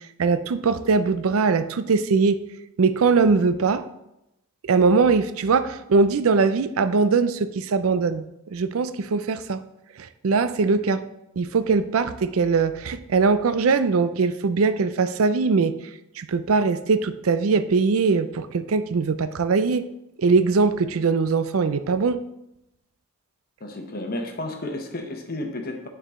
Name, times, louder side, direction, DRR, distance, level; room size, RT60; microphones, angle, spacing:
voice 1, 0.2-2.4 2.8-3.8 4.6-8.2 8.5-9.6 10.0-11.0 11.4-15.7 16.2-19.8 20.2-22.2, right 4 dB, 75° right, 12 dB, 0.5 m, -21 dB
voice 2, 23.6-25.9, left 1 dB, 45° left, 3 dB, 1.1 m, -32 dB
9.8 x 4.8 x 3.7 m, 0.87 s
head